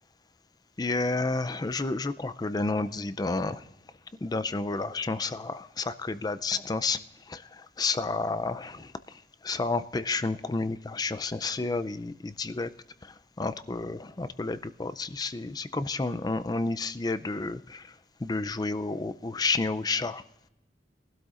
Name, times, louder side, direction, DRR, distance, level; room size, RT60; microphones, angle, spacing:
voice 1, 0.8-3.6 4.2-7.0 7.3-12.7 13.0-17.9 18.2-20.2, left 3 dB, 20° left, 12 dB, 0.4 m, -31 dB
22.0 x 12.0 x 2.5 m, 0.84 s
head